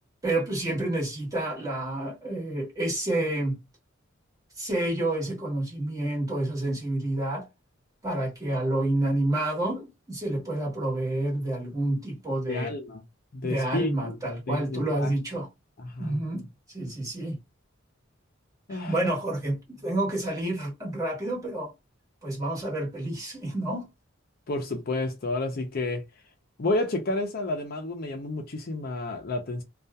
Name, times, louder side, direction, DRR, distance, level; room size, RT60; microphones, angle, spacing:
voice 1, 0.2-3.6 4.6-7.5 8.0-12.7 13.4-15.5 16.0-17.4 18.7-21.7 22.2-23.9, right 1 dB, 20° right, 1.4 m, -29 dB
voice 2, 12.5-13.0 13.3-14.2 14.5-15.1 15.8-16.2 18.7-19.0 24.5-26.0 26.6-29.6, left 2 dB, 50° left, 0.5 m, -30 dB
2.7 x 2.3 x 2.2 m
head